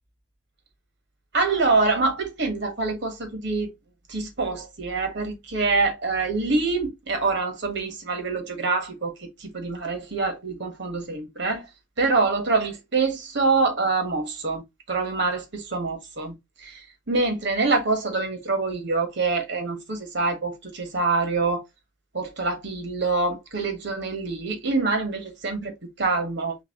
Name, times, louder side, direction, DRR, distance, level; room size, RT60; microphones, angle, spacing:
voice 1, 1.3-3.7 4.1-11.7 12.0-14.6 14.9-21.6 22.1-26.6, right 3 dB, 55° right, 1.2 m, -25 dB
4.0 x 3.3 x 2.8 m
head